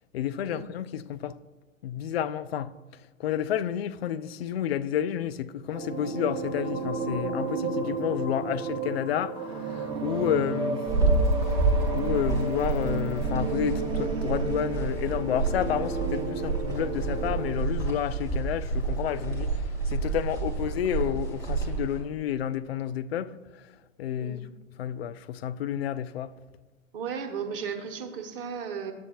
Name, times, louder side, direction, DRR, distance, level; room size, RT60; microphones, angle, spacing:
voice 1, 0.1-1.4 1.8-10.9 11.9-23.7 24.0-24.5 24.8-26.3, left 10 dB, 50° left, 0.4 m, -30 dB
sound 1, 5.7-17.5, right 3 dB, 10° right, 0.9 m, -32 dB
sound 2, 10.9-22.0, right 3 dB, 5° left, 2.1 m, -29 dB
voice 2, 26.9-28.9, right 6 dB, 45° right, 1.2 m, -35 dB
10.5 x 7.5 x 2.9 m
figure-of-eight pair, 105°, 40 cm